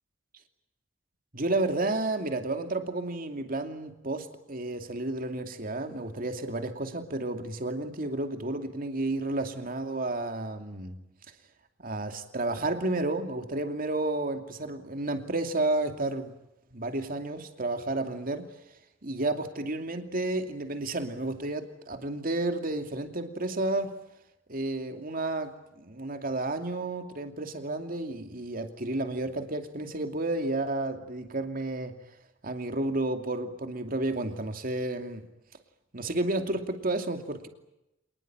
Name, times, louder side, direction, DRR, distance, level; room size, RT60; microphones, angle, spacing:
voice 1, 1.3-11.0 11.8-16.3 16.7-18.5 19.0-23.9 24.5-31.9 32.4-35.2 35.9-37.5, right 2 dB, 50° right, 6 dB, 2.7 m, -31 dB
27.0 x 20.5 x 8.9 m, 0.89 s
head